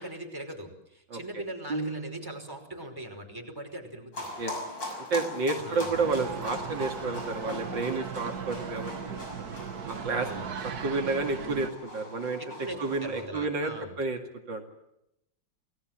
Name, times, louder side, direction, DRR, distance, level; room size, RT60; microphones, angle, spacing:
voice 1, 0.0-4.3 5.6-6.0 10.2-10.5 12.4-14.0, right 1 dB, 10° right, 4 dB, 5.2 m, -41 dB
voice 2, 1.1-1.4 4.4-4.5 5.1-9.2 9.9-14.2 14.5-14.6, right 3 dB, 70° right, 4 dB, 3.1 m, -31 dB
sound 1, 1.7-2.7, right 3 dB, 90° right, 3.1 m, -36 dB
sound 2, 4.1-13.2, left 2 dB, 70° left, 6.7 m, -41 dB
sound 3, 5.9-11.7, right 7 dB, 55° right, 1.8 m, -38 dB
29.5 x 19.5 x 7.5 m, 0.82 s
omnidirectional pair, 2.1 m